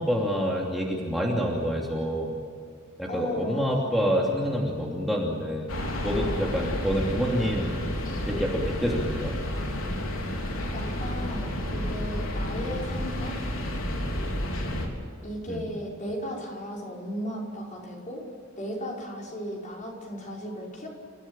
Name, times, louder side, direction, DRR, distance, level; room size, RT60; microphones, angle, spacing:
voice 1, 0.0-2.3 3.0-7.8 8.2-9.4 15.5-15.7, equal, ahead, -3 dB, 2.9 m, -27 dB
voice 2, 3.1-4.2 10.7-13.4 15.2-18.3 18.6-20.9, equal, 40° left, -2 dB, 5.7 m, -36 dB
Steel Mill Daytime Ambience, 5.7-14.9, left 1 dB, 80° left, 4.0 m, -31 dB
30.0 x 16.0 x 9.0 m, 2.1 s
head